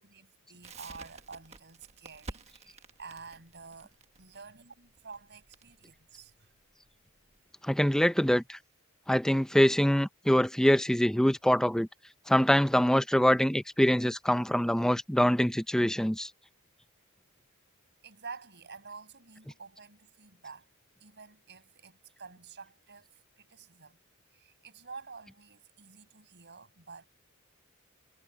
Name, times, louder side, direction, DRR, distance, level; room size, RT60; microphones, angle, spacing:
voice 1, 0.0-6.5 18.0-20.7 21.0-23.1 23.4-24.0 24.3-27.1, right 5 dB, 50° right, 6.4 m, -49 dB
Crackle, 0.6-7.4, right 3 dB, 30° right, 1.4 m, -50 dB
voice 2, 7.6-8.6 9.1-11.9 12.3-16.3, equal, 5° left, 0.5 m, -24 dB
head